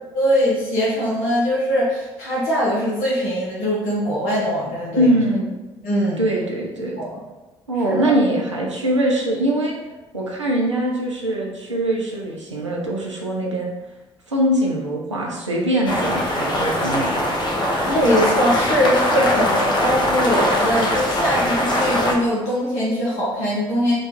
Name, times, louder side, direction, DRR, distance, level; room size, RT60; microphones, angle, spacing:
voice 1, 0.1-5.1 5.8-6.2 7.0-7.2 7.8-8.1 17.9-23.9, equal, 65° left, -6 dB, 0.8 m, -21 dB
voice 2, 5.0-5.5 6.2-7.0 7.7-9.8 10.1-13.7 14.3-17.2, right 1 dB, 90° right, -2 dB, 0.4 m, -22 dB
sound 1, 15.9-22.2, left 1 dB, 30° left, 0.8 m, -21 dB
3.0 x 2.3 x 4.1 m, 1.2 s
figure-of-eight pair, 45°, 15 cm